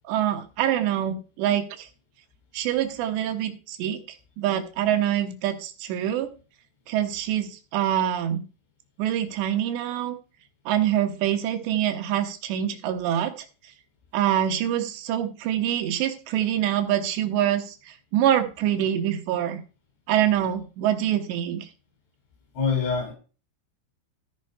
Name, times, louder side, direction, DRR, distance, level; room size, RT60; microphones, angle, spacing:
voice 1, 0.1-1.9 2.5-6.3 6.9-8.4 9.0-10.2 10.7-13.5 14.1-19.6 20.1-21.7, right 11 dB, 70° right, 6 dB, 2.9 m, -25 dB
voice 2, 22.6-23.1, left 5 dB, 65° left, -1 dB, 6.8 m, -24 dB
14.0 x 5.4 x 5.5 m, 0.35 s
omnidirectional pair, 5.9 m